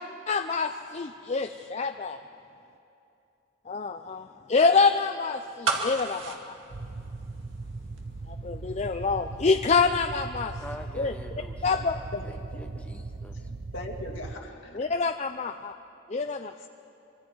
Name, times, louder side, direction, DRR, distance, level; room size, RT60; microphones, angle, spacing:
voice 1, 0.3-2.2 3.7-6.4 8.4-10.5 11.0-11.1 11.6-11.9 14.7-15.7 16.1-16.5, left 4 dB, 35° left, 7 dB, 0.5 m, -26 dB
sound 1, 5.6-7.7 8.0-8.1, right 3 dB, 65° right, 2.1 m, -31 dB
sound 2, 6.7-14.3, right 3 dB, 50° right, 0.7 m, -39 dB
voice 2, 10.6-13.5, left 1 dB, 5° left, 3 dB, 0.8 m, -45 dB
voice 3, 12.5-12.9 13.3-14.9 16.4-16.7, left 2 dB, 65° left, 1 dB, 2.3 m, -40 dB
25.0 x 25.0 x 4.6 m, 2.8 s
head